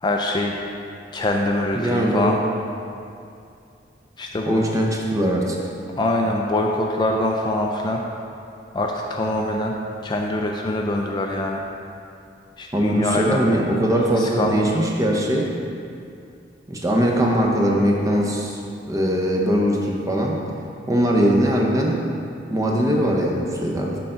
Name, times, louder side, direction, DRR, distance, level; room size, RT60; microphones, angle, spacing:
voice 1, 0.0-0.6 1.1-2.4 4.2-4.6 6.0-8.0 8.7-9.7 10.0-11.6 12.6-13.4 14.1-14.8, left 1 dB, 25° left, 1 dB, 0.3 m, -24 dB
voice 2, 1.8-2.3 4.5-5.6 12.7-15.6 16.7-18.6 18.9-20.4 20.9-22.1 22.5-24.0, equal, 20° right, -1 dB, 0.7 m, -21 dB
6.5 x 3.8 x 5.6 m, 2.5 s
head